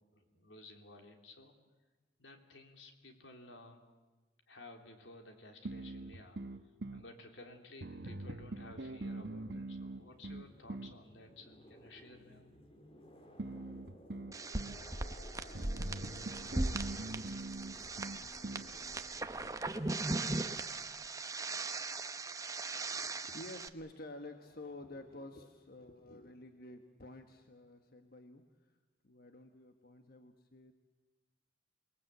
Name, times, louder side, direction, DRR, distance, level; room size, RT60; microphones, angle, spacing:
voice 1, 0.1-1.5 2.2-3.8 4.5-6.4 6.9-12.5, left 2 dB, 90° left, 4 dB, 3.2 m, -55 dB
sound 1, 5.7-7.1 7.8-11.0 13.4-14.8 15.5-18.7, right 2 dB, 65° right, 1.0 m, -43 dB
sound 2, 9.4-21.6, left 1 dB, 30° left, 2.3 m, -58 dB
sound 3, 14.3-23.7, right 2 dB, 20° right, 0.8 m, -39 dB
voice 2, 22.8-28.8 29.0-30.7, left 1 dB, 55° left, 6 dB, 1.4 m, -51 dB
28.0 x 20.5 x 8.2 m, 1.2 s
head